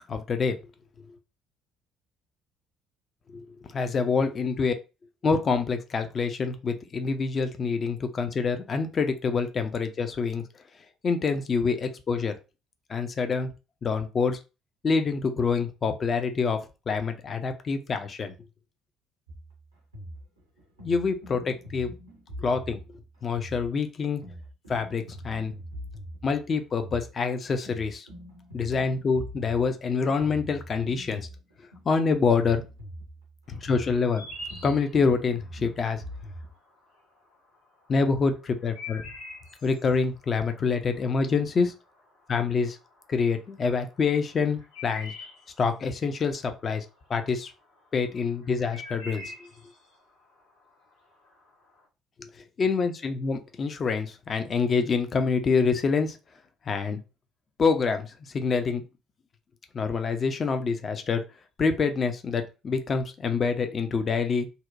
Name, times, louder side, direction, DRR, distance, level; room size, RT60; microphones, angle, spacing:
voice 1, 0.1-0.6 3.3-4.7 5.2-10.4 11.0-12.3 12.9-13.5 13.8-14.4 14.8-16.6 16.9-18.3 20.8-21.9 22.4-22.8 23.2-24.2 24.7-25.5 26.2-28.1 28.5-31.3 31.9-32.6 33.5-34.2 34.6-36.0 37.9-39.0 39.6-41.7 42.3-42.8 43.1-45.1 45.6-47.5 47.9-49.2 52.6-56.2 56.7-57.0 57.6-58.8 59.7-61.2 61.6-64.5, left 5 dB, 40° left, 8 dB, 0.4 m, -26 dB
sound 1, 19.3-36.5, equal, 85° right, 0.6 m, -43 dB
sound 2, 33.5-51.8, left 2 dB, 75° left, 1.1 m, -46 dB
2.7 x 2.1 x 2.5 m, 0.30 s
figure-of-eight pair, 50°, 0 cm